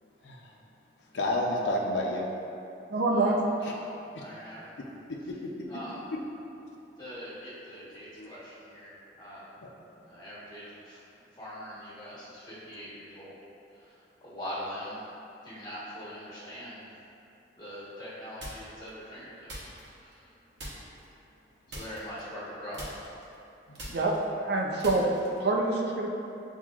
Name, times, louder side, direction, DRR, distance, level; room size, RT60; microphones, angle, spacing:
voice 1, 1.1-2.3 3.6-3.7 5.3-5.7 8.2-8.3 23.7-24.0, left 1 dB, 85° left, -1 dB, 0.5 m, -30 dB
voice 2, 2.9-3.4 23.9-25.1 25.4-26.1, right 2 dB, 60° right, 0 dB, 0.4 m, -26 dB
voice 3, 4.2-4.7 5.7-6.0 7.0-9.5 10.0-11.0 11.3-13.3 13.7-15.0 15.4-16.8 17.6-19.6 20.0-20.3 21.7-22.9 23.8-23.9, equal, 25° left, -9 dB, 1.2 m, -42 dB
sound 1, 18.4-18.9 19.5-20.3 20.6-21.1 21.7-22.5 22.7-25.5, equal, 75° right, 1.0 m, -43 dB
7.2 x 2.7 x 2.4 m, 2.8 s
head